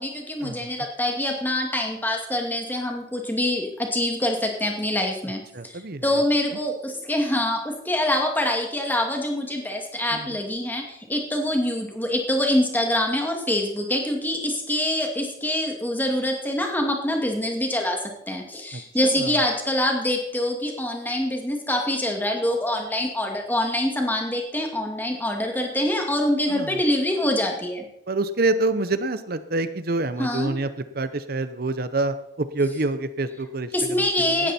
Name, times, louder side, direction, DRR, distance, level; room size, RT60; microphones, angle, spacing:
voice 1, 0.0-27.8 30.2-30.5 33.7-34.5, left 1 dB, 10° left, 2 dB, 2.3 m, -25 dB
voice 2, 5.5-6.1 6.5-6.6 10.1-10.4 18.7-19.3 26.5-26.8 28.1-30.7 30.9-34.5, right 2 dB, 55° right, 12 dB, 0.8 m, -27 dB
17.5 x 12.5 x 4.3 m, 0.80 s
head